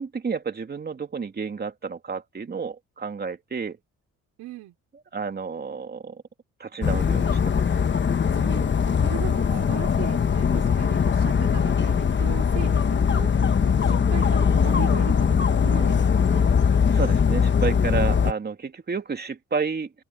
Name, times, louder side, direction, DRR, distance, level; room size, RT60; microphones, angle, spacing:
voice 1, 0.0-3.8 5.1-6.2 6.6-7.7 9.5-9.6 16.9-19.9, right 5 dB, 35° right, 2.6 m, -31 dB
voice 2, 4.4-4.7 8.3-13.3 13.6-16.5, right 15 dB, 90° right, 4.8 m, -38 dB
Dog, 6.8-18.3, left 6 dB, 40° left, 1.3 m, -21 dB
open air
cardioid pair, 90°, 30 cm